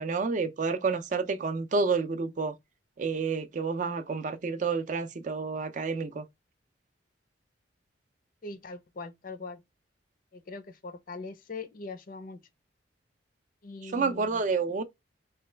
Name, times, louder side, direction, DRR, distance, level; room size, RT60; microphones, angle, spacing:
voice 1, 0.0-2.5 3.0-6.2 13.8-14.8, right 4 dB, 40° right, 0.4 m, -29 dB
voice 2, 8.4-9.6 10.3-12.4 13.6-14.4, left 3 dB, 45° left, 0.5 m, -41 dB
3.9 x 2.2 x 3.2 m
head